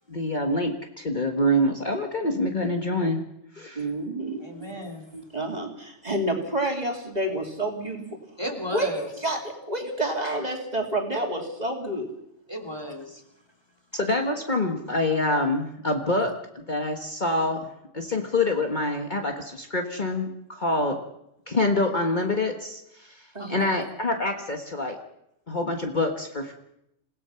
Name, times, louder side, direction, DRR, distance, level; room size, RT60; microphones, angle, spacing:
voice 1, 0.1-3.2 3.5-3.9 13.9-17.7 17.9-21.0 21.5-25.0 25.5-26.5, left 1 dB, 40° left, 3 dB, 1.7 m, -26 dB
voice 2, 3.7-4.7 5.1-8.2 8.7-12.1 23.3-23.6, right 1 dB, 35° right, 2 dB, 2.9 m, -29 dB
voice 3, 4.4-5.0 8.4-9.1 12.5-13.2 23.4-23.8, equal, 20° left, 3 dB, 3.1 m, -34 dB
28.0 x 17.0 x 5.8 m, 0.80 s
omnidirectional pair, 1.3 m